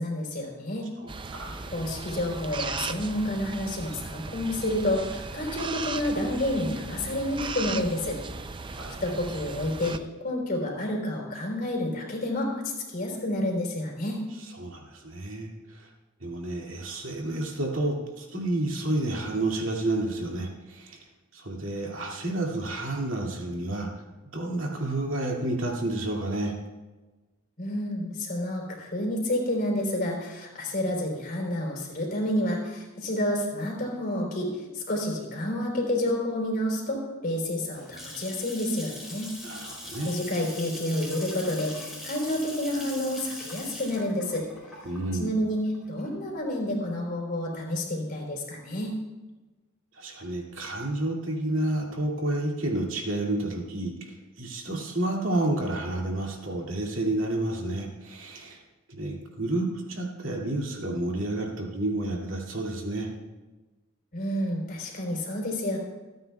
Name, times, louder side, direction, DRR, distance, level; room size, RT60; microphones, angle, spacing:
voice 1, 0.0-0.9 1.7-8.2 9.0-12.5 12.9-14.2 27.6-39.3 40.0-44.4 45.1-49.0 64.1-65.8, left 1 dB, 45° left, 0 dB, 3.8 m, -29 dB
voice 2, 1.0-1.6 8.7-9.0 14.6-15.9 16.2-21.0 21.3-23.9 24.3-26.5 39.4-40.1 44.8-45.3 49.9-58.6 58.9-63.1, right 2 dB, 60° right, -1 dB, 2.4 m, -30 dB
sound 1, 1.1-10.0, right 4 dB, 25° right, 0.4 m, -37 dB
Water tap faucet / Sink (filling or washing) / Splash splatter, 37.7-46.4, left 1 dB, ahead, 4.2 m, -41 dB
27.5 x 9.4 x 2.3 m, 1.2 s
head